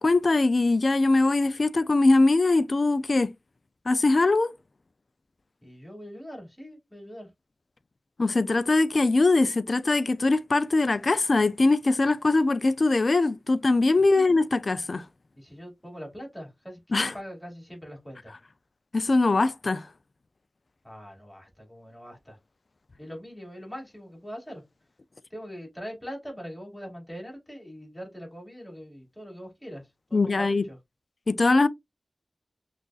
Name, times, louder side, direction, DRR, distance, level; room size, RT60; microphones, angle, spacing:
voice 1, 0.0-3.3 3.9-4.5 8.2-15.0 16.9-17.1 18.9-19.8 30.1-30.6 31.3-31.7, left 3 dB, 55° left, 0.4 m, -22 dB
voice 2, 5.6-7.3 14.0-14.3 15.4-18.4 20.8-22.4 23.0-24.6 25.3-30.8, equal, 10° left, 2.4 m, -42 dB
6.1 x 2.4 x 2.4 m
wide cardioid pair, 90°, 0 cm